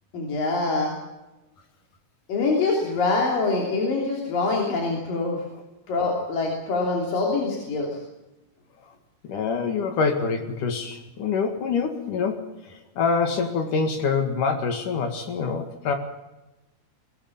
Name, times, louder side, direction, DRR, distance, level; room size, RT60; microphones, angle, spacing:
voice 1, 0.1-0.9 2.3-5.4 5.9-8.0, left 3 dB, 85° left, -1 dB, 4.8 m, -24 dB
voice 2, 9.3-12.4 13.0-16.0, left 5 dB, 70° left, 6 dB, 3.4 m, -25 dB
21.0 x 19.5 x 7.3 m, 1.0 s
omnidirectional pair, 3.8 m